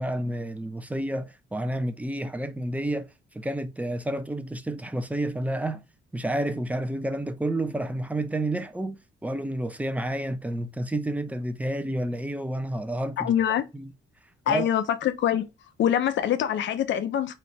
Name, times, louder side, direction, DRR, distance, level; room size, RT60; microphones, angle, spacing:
voice 1, 0.0-3.1 3.3-5.8 6.1-13.3 13.7-13.9 14.5-14.7, right 1 dB, 5° right, 0.7 m, -30 dB
voice 2, 13.2-13.6 14.5-15.5 15.8-17.4, left 10 dB, 70° left, 0.7 m, -24 dB
4.3 x 2.5 x 3.2 m
cardioid pair, 90°, 20 cm